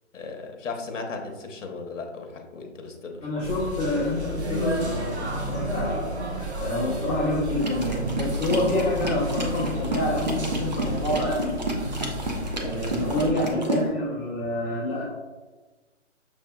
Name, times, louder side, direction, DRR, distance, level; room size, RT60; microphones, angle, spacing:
voice 1, 0.1-3.3, left 4 dB, 70° left, 3 dB, 0.9 m, -36 dB
voice 2, 3.2-6.0 6.6-11.9 12.5-15.0, left 1 dB, 10° left, -13 dB, 0.7 m, -27 dB
sound 1, 3.4-13.3, equal, 55° right, 0.9 m, -31 dB
sound 2, 7.6-13.8, right 2 dB, 35° right, 0.5 m, -31 dB
6.5 x 2.7 x 2.2 m, 1.2 s
hypercardioid pair, 160°, 39 cm